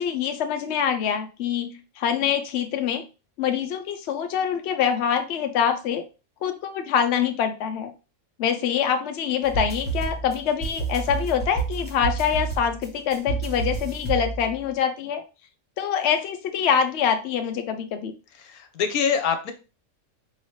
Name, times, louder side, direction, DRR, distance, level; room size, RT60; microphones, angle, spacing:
voice 1, 0.0-3.0 3.4-6.0 6.4-7.9 8.4-15.2 15.8-18.1, left 8 dB, 60° left, 6 dB, 0.8 m, -25 dB
sound 1, 9.4-14.7, right 4 dB, 5° right, 1.3 m, -30 dB
voice 2, 18.4-19.5, left 7 dB, 85° left, 7 dB, 1.2 m, -24 dB
4.6 x 2.8 x 3.2 m, 0.32 s
omnidirectional pair, 1.5 m